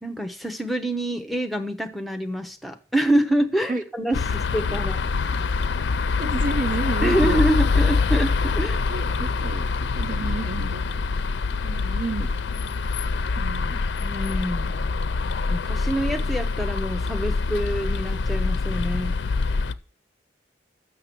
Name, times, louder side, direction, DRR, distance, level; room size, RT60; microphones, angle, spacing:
voice 1, 0.0-5.0 7.0-8.8 14.0-14.9 15.5-19.1, right 1 dB, ahead, 5 dB, 0.7 m, -26 dB
sound 1, 4.1-19.7, left 4 dB, 80° left, 0.5 m, -25 dB
voice 2, 6.2-7.4 8.9-11.0 11.6-12.5 13.4-13.8, right 3 dB, 45° right, 11 dB, 0.5 m, -31 dB
6.7 x 6.6 x 7.5 m, 0.39 s
head